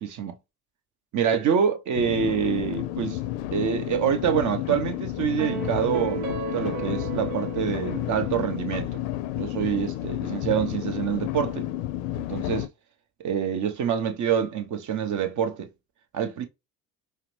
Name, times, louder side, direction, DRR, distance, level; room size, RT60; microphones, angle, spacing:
voice 1, 0.0-0.4 1.1-3.2 3.5-9.0 9.3-11.7 12.1-12.7 13.2-15.7 16.1-16.5, right 8 dB, 40° right, 0.7 m, -26 dB
sound 1, 1.9-12.7, left 14 dB, 55° left, 0.5 m, -31 dB
sound 2, 5.4-8.9, right 5 dB, 80° right, 0.8 m, -35 dB
4.8 x 2.1 x 3.0 m
hypercardioid pair, 65°, 47 cm